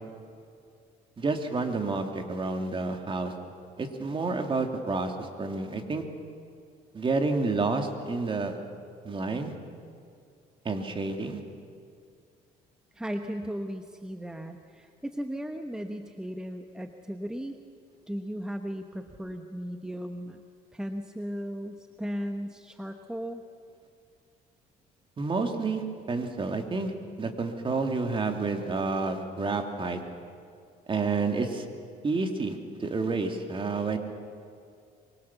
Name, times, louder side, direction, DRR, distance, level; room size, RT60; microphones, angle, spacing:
voice 1, 1.2-3.3 3.8-6.0 6.9-8.6 9.0-9.5 10.6-11.4 25.2-26.9 27.2-30.0 30.9-31.7 32.0-34.0, right 3 dB, 30° right, 5 dB, 2.6 m, -29 dB
voice 2, 12.9-17.6 18.1-20.4 20.7-23.4, equal, 5° right, 5 dB, 1.1 m, -36 dB
24.0 x 23.5 x 7.2 m, 2.3 s
cardioid pair, 110°, 17 cm